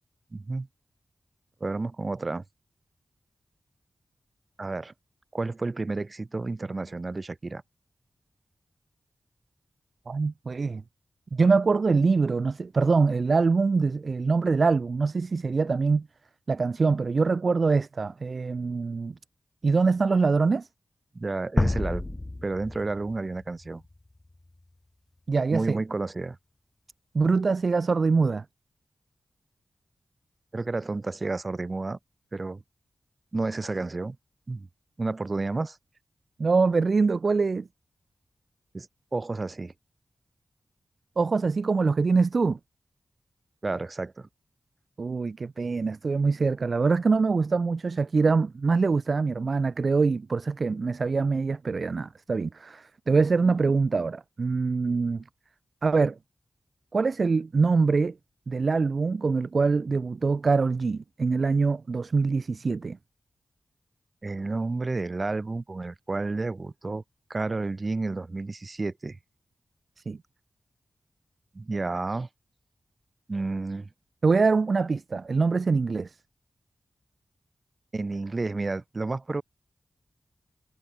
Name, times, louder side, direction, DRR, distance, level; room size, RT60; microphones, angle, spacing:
voice 1, 0.3-0.7 1.6-2.4 4.6-4.9 5.3-7.6 21.2-23.8 25.5-26.4 30.5-32.0 32.3-32.6 33.3-34.2 34.5-34.7 35.0-35.8 38.7-39.7 43.6-44.3 64.2-67.0 67.3-69.2 71.5-72.3 73.3-73.9 77.9-79.4, right 3 dB, 40° right, 6.9 m, -31 dB
voice 2, 10.1-10.8 11.3-16.1 16.5-19.1 19.6-20.7 25.3-25.8 27.1-28.4 36.4-37.7 41.2-42.6 45.0-55.2 55.8-56.2 56.9-58.1 58.5-63.0 70.1-70.2 74.2-76.1, right 4 dB, 55° right, 0.7 m, -24 dB
sound 1, 21.6-24.5, left 2 dB, 25° left, 1.2 m, -30 dB
wide cardioid pair, 75°, 0 cm